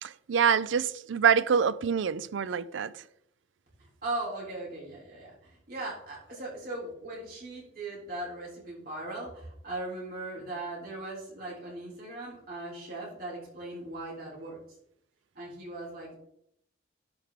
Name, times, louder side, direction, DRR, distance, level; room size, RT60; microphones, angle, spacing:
voice 1, 0.0-2.9, right 7 dB, 80° right, 0.4 m, -26 dB
voice 2, 3.8-14.6 15.4-16.2, right 2 dB, 50° right, 3.6 m, -39 dB
11.5 x 4.8 x 3.7 m
head